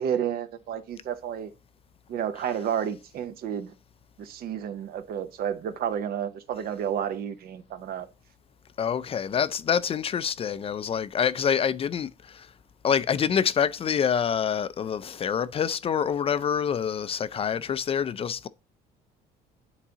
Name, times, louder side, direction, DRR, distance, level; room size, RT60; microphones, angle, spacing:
voice 1, 0.0-1.5 2.1-3.7 4.2-8.1, right 9 dB, 65° right, 0.8 m, -31 dB
voice 2, 8.8-12.5 12.8-18.5, left 7 dB, 35° left, 0.4 m, -26 dB
9.9 x 3.9 x 2.8 m
cardioid pair, 110°, 17 cm